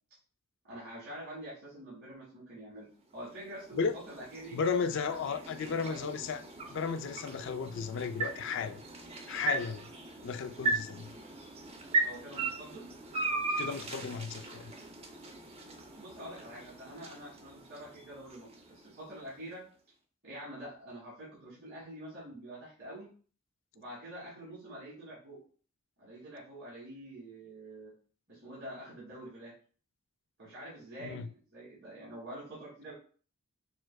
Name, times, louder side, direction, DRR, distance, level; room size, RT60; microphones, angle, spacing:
voice 1, 0.6-2.9 3.1-5.2 5.5-6.2 12.0-12.9 16.0-19.6 20.2-23.1 23.7-25.4 26.0-27.9 28.3-29.5 30.4-32.9, right 1 dB, 50° right, 1.8 m, -46 dB
sound 1, 3.1-19.3, right 3 dB, 25° right, 0.6 m, -38 dB
voice 2, 4.5-6.4 6.7-8.8 9.3-9.9 10.2-11.1 13.6-14.7 31.0-31.3, left 5 dB, 55° left, 0.3 m, -34 dB
6.3 x 2.5 x 2.3 m
head